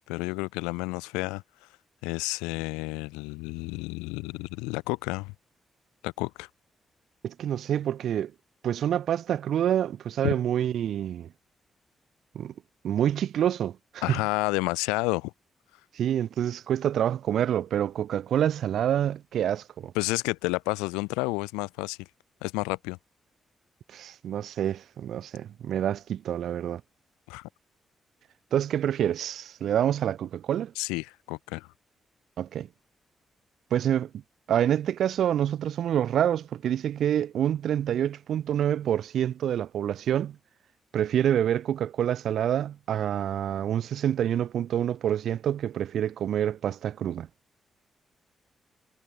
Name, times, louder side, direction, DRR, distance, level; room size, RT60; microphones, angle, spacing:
voice 1, 0.1-1.4 2.0-5.3 6.0-6.5 10.2-10.3 14.0-15.3 19.9-22.1 22.4-23.0 27.3-27.4 30.8-31.7, left 26 dB, 85° left, 2.5 m, -30 dB
voice 2, 7.2-8.3 8.6-11.3 12.3-12.5 12.8-14.2 15.9-19.9 23.9-26.8 28.5-30.7 32.4-32.7 33.7-34.1 34.5-40.4 40.9-47.3, right 10 dB, 70° right, 0.5 m, -27 dB
hypercardioid pair, 40°, 0 cm